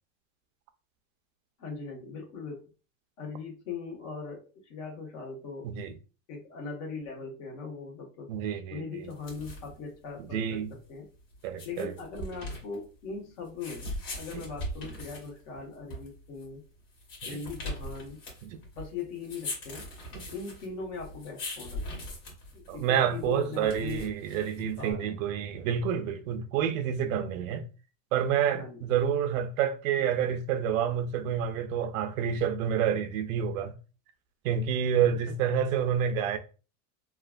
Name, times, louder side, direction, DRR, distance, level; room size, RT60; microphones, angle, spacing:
voice 1, 1.6-2.7 3.2-5.7 6.3-8.3 8.7-11.1 11.6-13.9 14.2-16.6 17.2-18.2 18.7-19.9 20.3-22.1 22.7-24.1 24.5-25.2 28.6-28.8, left 4 dB, 70° left, 1.3 m, -40 dB
voice 2, 8.3-9.1 10.2-10.7 11.4-11.9 17.3-17.4 18.4-18.6 20.1-20.3 22.7-27.6 28.1-33.7 34.4-36.4, right 8 dB, 85° right, 0.6 m, -28 dB
sound 1, 9.0-24.9, left 1 dB, 50° left, 1.5 m, -41 dB
3.2 x 2.4 x 2.3 m
supercardioid pair, 140°, 40 cm